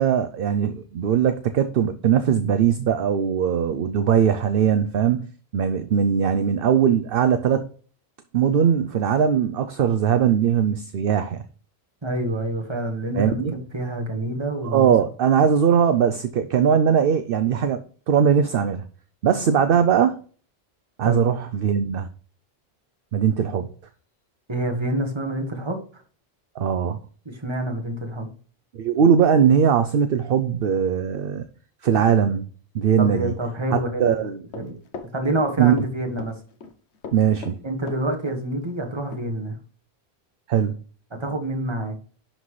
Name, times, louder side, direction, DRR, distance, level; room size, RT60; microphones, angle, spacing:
voice 1, 0.0-5.3 5.5-7.7 8.3-11.4 13.1-13.5 14.6-17.8 18.1-18.8 19.2-20.2 21.0-22.1 23.1-23.7 26.6-27.0 28.7-31.4 31.8-32.5 32.7-33.3 33.7-34.4 35.6-35.7 37.1-37.6 40.5-40.7, right 8 dB, 60° right, 0.8 m, -20 dB
voice 2, 12.0-14.9 21.0-21.3 24.5-26.0 27.2-28.3 33.0-34.8 35.1-36.3 37.6-39.6 41.1-41.9, right 1 dB, 25° right, 1.6 m, -27 dB
Run, 34.5-35.9 36.2-36.7 37.0-38.4 38.7-38.8 39.1-39.2, left 5 dB, 85° left, 1.2 m, -38 dB
11.0 x 4.0 x 3.2 m
omnidirectional pair, 1.1 m